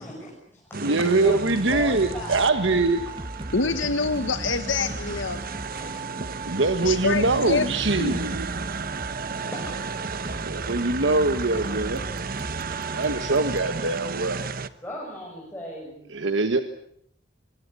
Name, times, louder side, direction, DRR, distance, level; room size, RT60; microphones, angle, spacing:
voice 1, 0.0-2.6 3.1-3.2 5.5-6.7 7.2-7.9 8.2-8.4 9.5-9.8 11.5-12.3 14.8-16.0, equal, 10° left, -2 dB, 6.8 m, -39 dB
sound 1, 0.7-14.7, right 4 dB, 50° right, 1.1 m, -34 dB
voice 2, 0.8-3.0 6.5-8.5 10.3-12.0 12.9-14.4 16.1-16.6, right 3 dB, 70° right, 8 dB, 1.4 m, -23 dB
sound 2, 1.2-14.3, right 2 dB, 25° right, 1.3 m, -37 dB
voice 3, 3.5-5.4 6.8-7.6 8.0-8.2, left 4 dB, 85° left, 9 dB, 1.4 m, -26 dB
25.5 x 21.5 x 8.4 m, 0.70 s
head